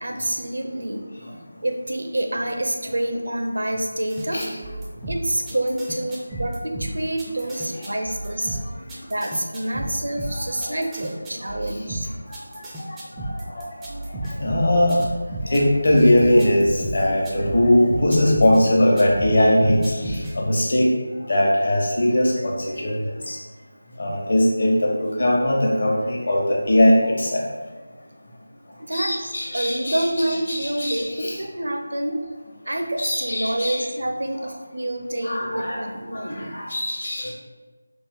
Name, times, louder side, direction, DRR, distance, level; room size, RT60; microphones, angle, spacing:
voice 1, 0.0-1.1 1.6-4.4 5.1-8.6 9.0-12.1 28.8-29.3 29.5-32.2 32.7-36.5, right 1 dB, 70° right, 3 dB, 0.6 m, -27 dB
sound 1, 4.1-18.6 19.0-20.4, right 1 dB, 5° right, 0.4 m, -32 dB
voice 2, 14.4-15.0 15.5-20.9 21.3-23.0 23.3-23.4 24.0-27.4 28.9-31.4 33.0-33.8 35.2-35.8 36.1-37.3, left 1 dB, 55° left, -2 dB, 0.9 m, -20 dB
4.3 x 2.3 x 3.4 m, 1.3 s
figure-of-eight pair, 165°, 0 cm